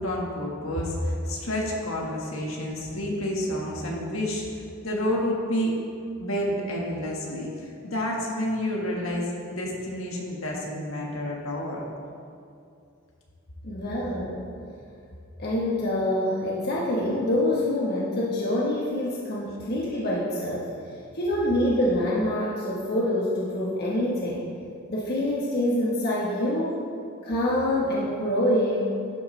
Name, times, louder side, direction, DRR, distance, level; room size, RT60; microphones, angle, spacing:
voice 1, 0.0-4.5 4.8-5.7 6.2-11.8, left 1 dB, 70° left, -2 dB, 1.7 m, -29 dB
voice 2, 13.6-14.4 15.4-20.7 21.1-24.4 24.9-26.9 27.2-29.0, left 1 dB, 50° left, -5 dB, 1.3 m, -26 dB
11.5 x 8.0 x 3.3 m, 2.5 s
head